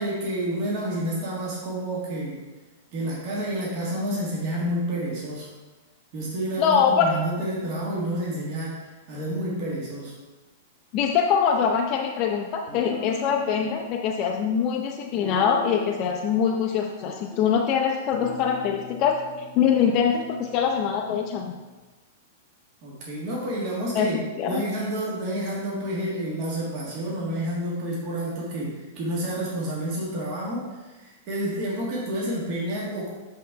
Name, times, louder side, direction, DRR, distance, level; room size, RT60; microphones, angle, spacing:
voice 1, 0.0-2.4 2.9-5.5 6.1-10.1 22.8-33.1, right 1 dB, 40° right, -5 dB, 1.6 m, -29 dB
voice 2, 6.6-7.2 10.9-19.2 19.5-21.5 23.9-24.1 24.4-24.6, left 7 dB, 35° left, 2 dB, 0.5 m, -23 dB
Guitar, 12.7-13.9 15.1-16.1 16.4-17.5 18.1-21.6, left 2 dB, 15° right, 1.6 m, -40 dB
8.2 x 3.8 x 4.6 m, 1.2 s
supercardioid pair, 155°, 0 cm